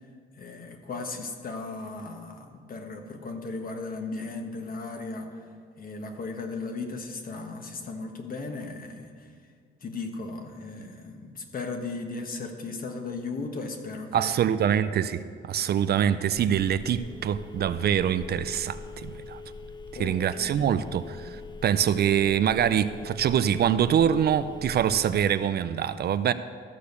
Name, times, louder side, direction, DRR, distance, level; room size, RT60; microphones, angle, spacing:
voice 1, 0.4-5.3 5.8-9.3 9.8-14.6 19.9-20.7, left 3 dB, 45° left, 1.4 m, -36 dB
voice 2, 14.1-19.4 20.0-26.3, right 9 dB, 55° right, 0.4 m, -25 dB
Telephone, 16.4-25.3, left 3 dB, 20° left, 0.6 m, -42 dB
13.5 x 5.1 x 6.7 m
cardioid pair, 90°, 20 cm